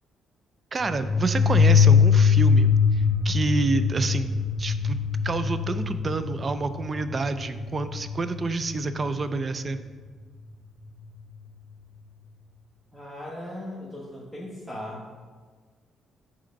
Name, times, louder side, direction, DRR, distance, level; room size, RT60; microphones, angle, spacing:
voice 1, 0.7-5.0 5.2-9.8, right 3 dB, 35° right, 11 dB, 0.4 m, -28 dB
sound 1, 0.8-9.2, left 6 dB, 40° left, 1.4 m, -22 dB
voice 2, 12.9-15.0, left 1 dB, 5° right, -5 dB, 1.1 m, -38 dB
5.0 x 4.2 x 5.2 m, 1.5 s
cardioid pair, 90°, 0 cm